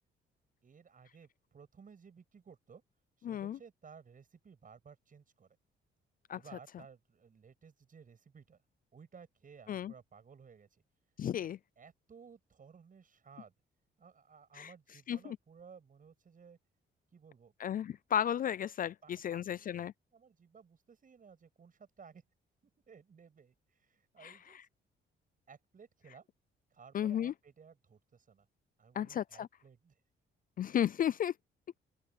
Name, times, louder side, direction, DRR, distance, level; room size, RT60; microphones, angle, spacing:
voice 1, 0.6-2.8 3.2-5.6 6.3-8.6 8.9-10.8 11.3-11.5 11.8-13.5 14.0-16.6 17.1-17.5 19.0-19.9 20.1-22.2 22.9-24.6 25.5-26.3 26.7-28.5 28.8-30.0, right 6 dB, 45° right, 7.5 m, -57 dB
voice 2, 3.2-3.6 6.3-6.4 9.7-9.9 11.2-11.6 14.6-14.7 15.1-15.4 17.6-19.9 24.2-24.3 26.9-27.3 29.0-29.5 30.6-31.3, left 10 dB, 45° left, 0.4 m, -33 dB
open air
cardioid pair, 90°, 20 cm